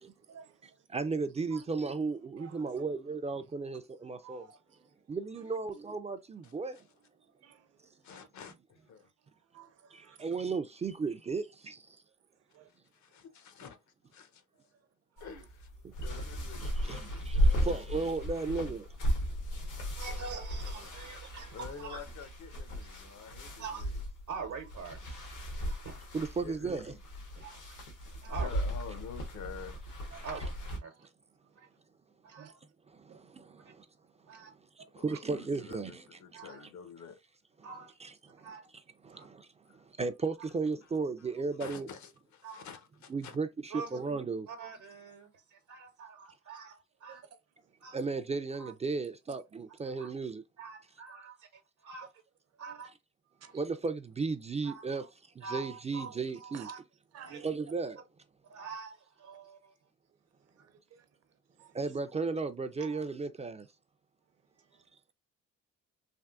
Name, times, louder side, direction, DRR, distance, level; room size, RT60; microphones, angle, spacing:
voice 1, 0.1-0.9 1.5-1.7 2.4-2.8 4.1-5.6 7.2-8.3 9.0-10.3 12.3-12.7 14.5-15.4 15.9-16.2 17.4-17.7 19.2-20.0 25.7-25.9 30.1-30.4 31.4-31.7 32.4-32.5 33.1-33.3 34.3-34.4 34.8-35.2 47.0-47.4 47.7-47.8 49.3-49.4 52.5-52.8 53.4-53.6 56.5-56.8 57.1-57.5 60.4-61.8 64.4-64.9, right 8 dB, 55° right, 0.7 m, -56 dB
voice 2, 0.9-4.4 5.1-6.8 9.9-11.8 16.6-17.0 17.3-18.9 26.1-26.9 33.0-33.9 34.9-36.2 38.0-38.5 39.0-39.5 40.0-41.9 43.1-44.5 47.9-50.4 53.5-55.0 55.4-56.7 57.4-58.0 61.7-63.7, right 4 dB, 20° right, 0.3 m, -35 dB
voice 3, 6.4-6.8 8.0-9.1 12.7-14.4 15.2-15.7 16.0-17.8 20.0-20.3 20.6-20.9 21.5-23.9 26.4-27.0 28.3-29.8 35.0-37.2 39.7-39.8 40.8-40.9 41.2-41.3 41.6-43.4, left 7 dB, 70° left, 0.8 m, -49 dB
sound 1, 15.2-30.8, equal, 85° left, 1.2 m, -35 dB
voice 4, 20.0-22.0 23.6-24.0 24.3-25.2 25.6-25.9 27.4-27.8 28.2-28.6 30.2-30.4 30.8-31.1 31.6-31.7 32.2-32.6 33.6-33.7 34.3-34.5 36.3-36.6 37.6-37.9 38.4-38.7 39.1-39.3 42.4-42.6 43.7-44.0 44.5-47.2 47.8-48.0 48.6-48.7 49.8-50.1 50.6-52.1 52.6-52.9 54.6-55.1 55.4-56.8 57.3-57.4 58.5-59.7 62.8-63.1, right 5 dB, 80° right, 0.9 m, -45 dB
3.5 x 2.5 x 2.4 m
cardioid pair, 90°, 30 cm